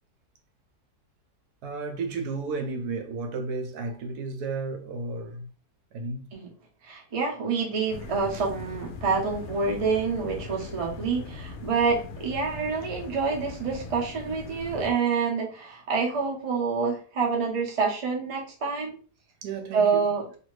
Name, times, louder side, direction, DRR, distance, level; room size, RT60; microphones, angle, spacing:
voice 1, 1.6-5.5 5.9-6.3 8.3-8.5 19.4-20.1, right 3 dB, 80° right, 1.1 m, -33 dB
voice 2, 6.8-19.0 19.7-20.2, right 5 dB, 35° right, 0.5 m, -27 dB
sound 1, 7.9-14.9, left 3 dB, 65° left, 0.7 m, -40 dB
2.7 x 2.6 x 3.1 m
omnidirectional pair, 1.7 m